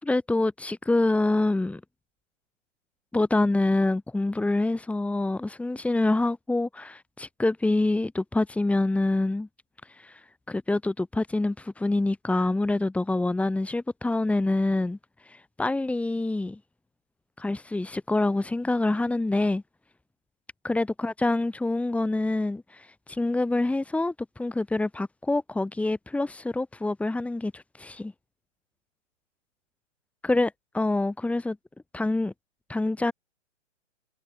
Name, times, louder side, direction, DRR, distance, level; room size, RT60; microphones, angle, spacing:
voice 1, 0.0-1.8 3.1-9.5 9.9-10.2 10.5-15.0 15.3-16.6 17.4-19.6 20.6-28.1 30.2-31.6 31.9-32.3 32.7-33.1, left 2 dB, 5° left, 7.2 m, -26 dB
hypercardioid pair, 145°, 37 cm